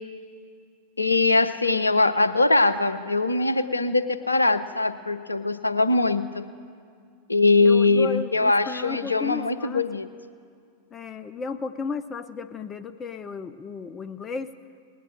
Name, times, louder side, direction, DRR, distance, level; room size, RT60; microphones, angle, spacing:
voice 1, 1.0-6.4 7.3-10.1, left 3 dB, 80° left, 12 dB, 0.5 m, -22 dB
voice 2, 7.6-10.0 10.9-14.5, left 4 dB, 20° left, 10 dB, 0.4 m, -34 dB
19.5 x 9.1 x 6.2 m, 2.2 s
figure-of-eight pair, 90°, 0 cm